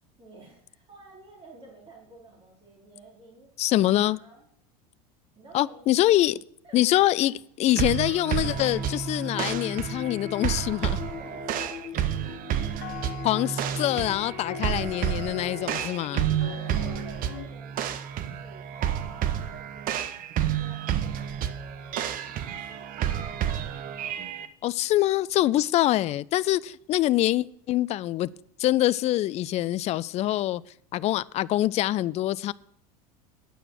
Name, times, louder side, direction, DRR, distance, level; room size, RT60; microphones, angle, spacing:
voice 1, 0.2-4.5 5.4-5.8 6.6-7.3 11.2-11.8 12.2-13.5 16.4-20.0 20.3-22.9, right 2 dB, 25° right, 3.9 m, -51 dB
voice 2, 3.6-4.2 5.5-6.4 6.7-11.0 13.2-16.3 24.6-28.3 28.6-30.6 30.9-32.5, left 15 dB, 35° left, 0.3 m, -24 dB
sound 1, 7.7-24.5, right 10 dB, 45° right, 0.8 m, -30 dB
sound 2, 8.4-17.5, left 10 dB, 50° left, 0.8 m, -40 dB
9.2 x 6.6 x 6.3 m
hypercardioid pair, 90°, 20 cm